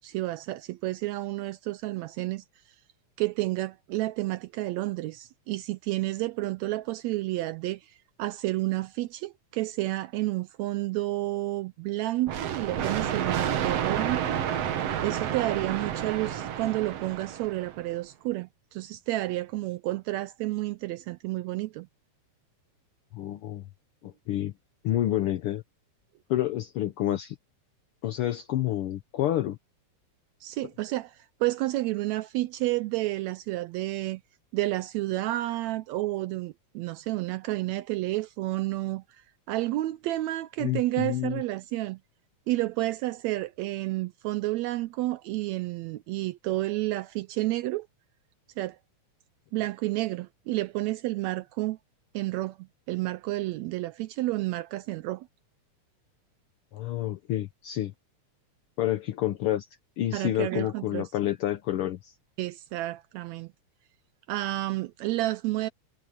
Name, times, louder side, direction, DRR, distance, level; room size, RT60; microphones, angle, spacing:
voice 1, 0.0-2.4 3.2-14.2 15.0-21.9 30.4-34.2 34.5-39.0 39.5-42.0 42.5-47.9 48.6-48.8 49.5-51.8 52.1-55.3 60.1-61.1 62.4-63.5 64.3-65.7, right 17 dB, 80° right, 1.7 m, -30 dB
sound 1, 12.3-17.9, right 9 dB, 60° right, 2.2 m, -30 dB
voice 2, 23.1-23.6 24.0-24.5 24.8-25.6 26.3-27.3 28.0-29.6 40.6-41.4 56.7-57.9 58.8-59.7 60.0-62.1, left 13 dB, 80° left, 1.2 m, -29 dB
omnidirectional pair, 3.5 m